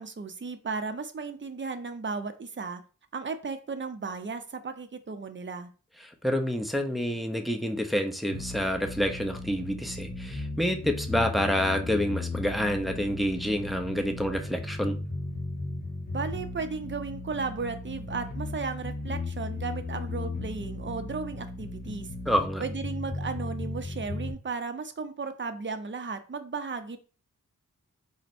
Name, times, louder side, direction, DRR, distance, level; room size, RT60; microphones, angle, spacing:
voice 1, 0.0-2.8 3.1-5.7 16.1-22.1 22.6-27.0, right 4 dB, 35° right, 8 dB, 0.6 m, -35 dB
voice 2, 6.0-15.0 22.3-22.6, equal, ahead, 4 dB, 0.7 m, -28 dB
sound 1, 8.3-24.3, left 2 dB, 30° left, 1.8 m, -36 dB
4.2 x 2.2 x 4.2 m, 0.37 s
cardioid pair, 45°, 33 cm